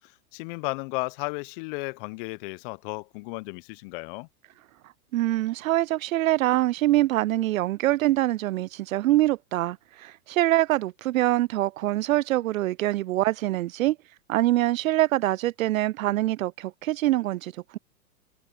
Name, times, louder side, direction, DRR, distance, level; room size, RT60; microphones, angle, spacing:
voice 1, 0.0-4.3, left 28 dB, 35° left, 0.6 m, -34 dB
voice 2, 5.1-14.0 14.3-17.8, right 15 dB, 65° right, 0.6 m, -24 dB
hypercardioid pair, 110°, 45 cm